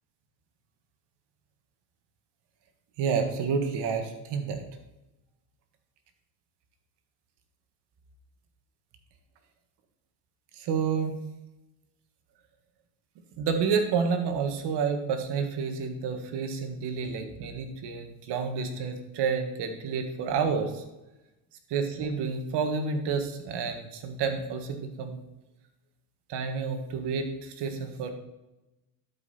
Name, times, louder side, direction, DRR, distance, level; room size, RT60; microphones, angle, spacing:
voice 1, 3.0-4.6 10.5-11.2 13.4-20.8 21.7-25.2 26.3-28.1, right 5 dB, 65° right, 6 dB, 1.6 m, -29 dB
11.5 x 5.3 x 4.3 m, 0.99 s
supercardioid pair, 80°, 44 cm